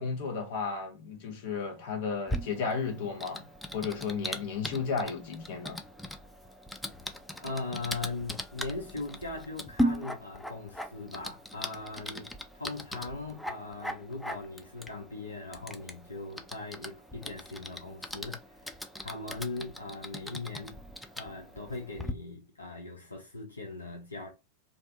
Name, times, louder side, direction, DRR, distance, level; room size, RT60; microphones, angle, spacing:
voice 1, 0.0-3.5 3.7-5.8, left 5 dB, 50° left, 0.8 m, -33 dB
Typing, 2.3-22.1, equal, 5° left, 0.3 m, -39 dB
voice 2, 7.3-20.8 21.2-24.3, left 3 dB, 80° left, 0.5 m, -40 dB
2.4 x 2.3 x 2.5 m
figure-of-eight pair, 90°, 0 cm